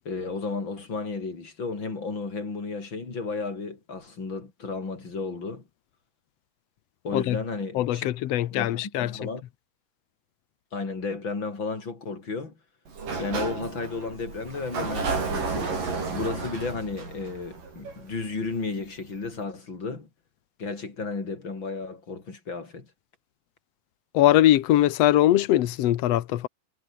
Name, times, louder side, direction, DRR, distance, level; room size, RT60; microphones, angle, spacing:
voice 1, 0.0-5.6 7.0-8.1 8.5-9.4 10.7-12.5 13.1-15.7 16.1-20.1 20.6-22.9, left 4 dB, 30° left, 4.9 m, -33 dB
voice 2, 7.7-9.2 24.1-26.5, left 13 dB, 85° left, 1.4 m, -21 dB
Sliding door, 12.9-18.5, right 4 dB, 60° right, 8.1 m, -32 dB
omnidirectional pair, 4.4 m